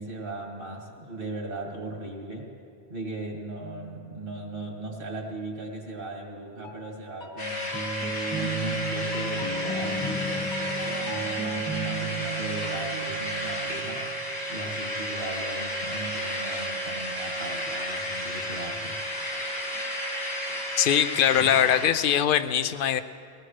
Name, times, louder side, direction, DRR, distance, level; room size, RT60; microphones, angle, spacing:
voice 1, 0.0-2.5 2.9-7.7 8.3-14.2 14.5-19.0, right 2 dB, 60° right, 0 dB, 2.4 m, -37 dB
sound 1, 3.6-4.8 6.6-14.3, right 2 dB, 25° left, 1.1 m, -36 dB
sound 2, 7.4-21.9, equal, 80° left, 2.5 m, -32 dB
voice 2, 20.8-23.0, left 9 dB, 60° left, 12 dB, 0.7 m, -22 dB
21.5 x 18.5 x 3.3 m, 2.4 s
omnidirectional pair, 1.1 m